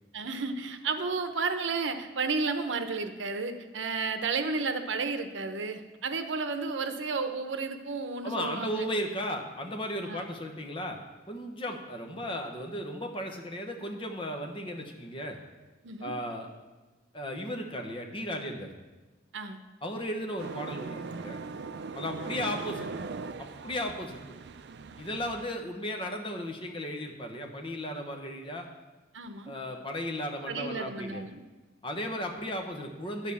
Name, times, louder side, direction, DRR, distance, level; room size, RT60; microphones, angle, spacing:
voice 1, 0.1-8.8 10.0-10.2 15.8-16.1 19.3-19.6 29.1-29.5 30.5-31.4, right 4 dB, 80° right, 7 dB, 0.8 m, -32 dB
voice 2, 8.2-11.0 11.3-15.4 16.0-16.5 17.1-18.7 19.8-21.4 21.9-23.1 23.4-24.4 25.0-28.7 29.5-31.2 31.8-33.3, equal, 30° left, 3 dB, 1.0 m, -35 dB
sound 1, 20.4-25.5, right 4 dB, 60° right, 0.4 m, -40 dB
10.5 x 5.0 x 7.0 m, 1.2 s
head